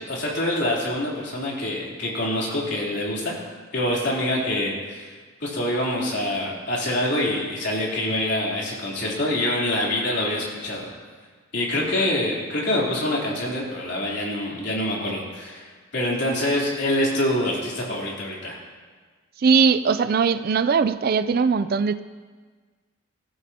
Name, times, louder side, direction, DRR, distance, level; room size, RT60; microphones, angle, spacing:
voice 1, 0.1-3.3 3.7-5.1 5.4-10.9 11.5-15.7 15.9-18.5, left 1 dB, 60° left, -4 dB, 3.4 m, -25 dB
voice 2, 19.4-22.0, right 5 dB, 50° right, 13 dB, 0.4 m, -20 dB
18.0 x 14.0 x 2.9 m, 1.4 s
head